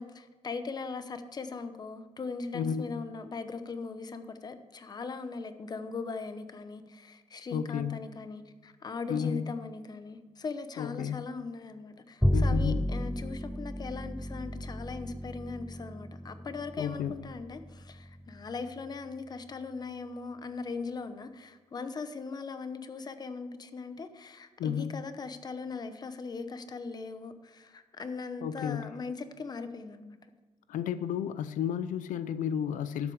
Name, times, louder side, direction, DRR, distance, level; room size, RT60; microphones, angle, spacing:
voice 1, 0.0-30.2, left 4 dB, 30° left, 10 dB, 0.9 m, -39 dB
voice 2, 2.5-3.0 7.5-8.0 9.1-9.5 10.8-11.3 12.3-12.9 16.8-17.1 24.6-25.0 28.4-28.9 30.7-33.1, left 8 dB, 90° left, 13 dB, 0.5 m, -32 dB
Bowed string instrument, 12.2-18.7, equal, ahead, 0.3 m, -33 dB
12.5 x 7.8 x 4.8 m, 1.4 s
cardioid pair, 135°, 13 cm